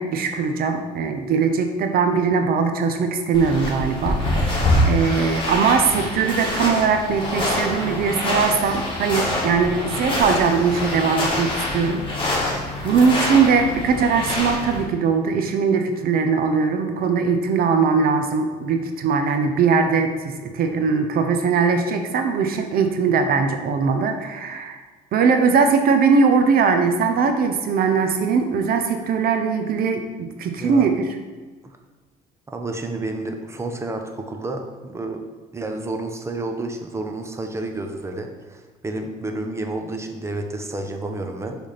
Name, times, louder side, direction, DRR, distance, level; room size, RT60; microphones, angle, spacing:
voice 1, 0.0-12.5 12.8-24.8 25.1-31.2, right 5 dB, 65° right, 6 dB, 0.7 m, -20 dB
sound 1, 3.3-14.8, left 1 dB, 30° left, 1.9 m, -25 dB
voice 2, 30.6-30.9 32.5-35.2 35.5-41.6, right 2 dB, 15° right, 4 dB, 0.8 m, -30 dB
6.3 x 3.5 x 5.8 m, 1.4 s
cardioid pair, 110°, 17 cm